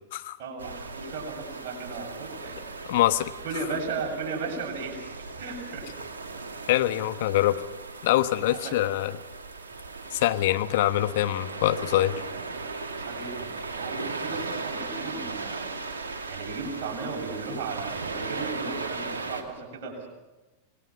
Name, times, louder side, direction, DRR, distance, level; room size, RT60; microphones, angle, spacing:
voice 1, 0.4-2.7 3.4-5.9 7.4-7.5 8.5-8.8 12.9-15.7 16.3-20.1, right 4 dB, 50° right, 0 dB, 7.4 m, -36 dB
sound 1, 0.6-19.4, right 3 dB, 70° right, 2.3 m, -37 dB
voice 2, 2.9-3.3 6.7-7.6 8.0-9.1 10.1-12.2, left 14 dB, 55° left, 10 dB, 1.1 m, -24 dB
27.0 x 20.0 x 5.9 m, 1.1 s
figure-of-eight pair, 90°, 0 cm